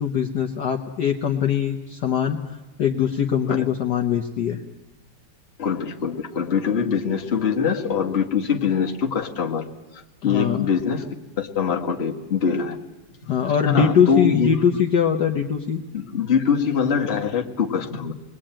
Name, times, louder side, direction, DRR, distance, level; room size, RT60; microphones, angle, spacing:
voice 1, 0.0-4.6 10.2-10.7 13.3-15.8, left 8 dB, 55° left, 2 dB, 1.5 m, -22 dB
voice 2, 5.6-9.7 9.9-12.8 13.7-14.6 15.9-18.1, left 6 dB, 30° left, 1 dB, 1.7 m, -23 dB
28.5 x 21.5 x 8.9 m, 1.1 s
omnidirectional pair, 2.4 m